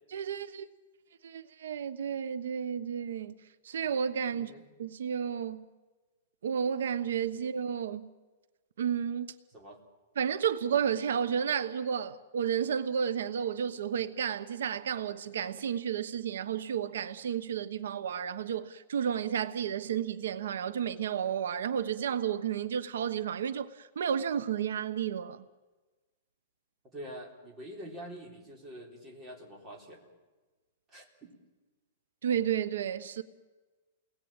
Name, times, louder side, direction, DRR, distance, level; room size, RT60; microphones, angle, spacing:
voice 1, 0.1-0.7 1.2-3.4 3.6-4.5 4.8-5.7 6.4-8.1 8.8-9.3 10.2-25.5 32.2-33.2, right 8 dB, 90° right, 1.1 m, -32 dB
voice 2, 4.3-4.6 9.5-9.8 26.9-30.1 30.9-31.3, equal, 15° right, 3.8 m, -46 dB
29.5 x 20.0 x 9.0 m
supercardioid pair, 175°, 0 cm